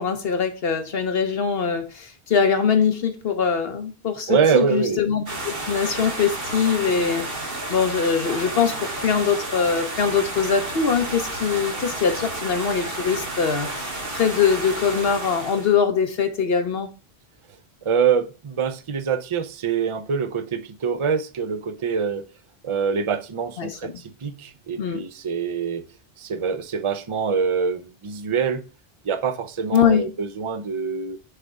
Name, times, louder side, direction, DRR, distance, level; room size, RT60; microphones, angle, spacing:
voice 1, 0.0-16.9 23.6-23.9 24.8-25.0 29.7-30.1, left 6 dB, 65° left, 1.0 m, -22 dB
voice 2, 4.3-5.0 17.8-22.3 22.6-25.8 26.2-28.6 29.0-31.2, right 6 dB, 35° right, 0.6 m, -24 dB
sound 1, 5.3-15.7, right 2 dB, 60° right, 2.0 m, -31 dB
6.7 x 3.5 x 5.4 m
omnidirectional pair, 1.1 m